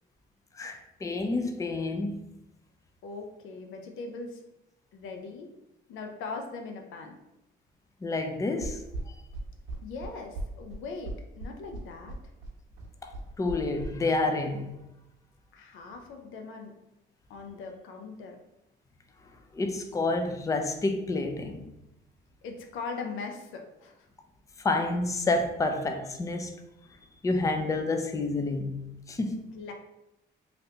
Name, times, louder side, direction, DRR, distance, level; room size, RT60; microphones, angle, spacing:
voice 1, 0.6-2.2 8.0-8.8 13.0-13.1 13.4-14.7 19.5-21.6 24.6-26.5 27.2-29.4, left 2 dB, 15° left, 0.4 m, -29 dB
voice 2, 3.0-4.4 4.9-5.5 5.9-7.2 9.8-12.2 15.5-16.7 17.3-18.4 22.4-24.1 29.4-29.7, left 4 dB, 90° left, 0.5 m, -40 dB
sound 1, 8.6-13.9, right 2 dB, 85° right, 0.8 m, -37 dB
3.2 x 2.5 x 2.7 m
cardioid pair, 90°, 20 cm